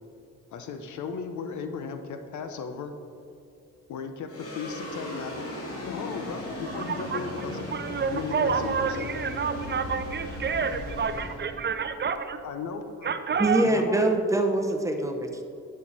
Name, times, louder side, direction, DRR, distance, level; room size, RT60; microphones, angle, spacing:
voice 1, 0.5-2.9 3.9-5.5 5.8-7.6 8.1-9.1 12.4-13.2 13.6-14.2, left 5 dB, 70° left, 7 dB, 0.9 m, -36 dB
sound 1, 4.3-12.8, left 1 dB, 50° left, 2.1 m, -37 dB
voice 2, 6.7-12.4 13.0-13.7, right 6 dB, 35° right, 9 dB, 0.5 m, -29 dB
voice 3, 13.4-15.4, right 2 dB, 10° right, 4 dB, 0.9 m, -24 dB
10.0 x 6.7 x 4.1 m, 2.4 s
cardioid pair, 90°, 30 cm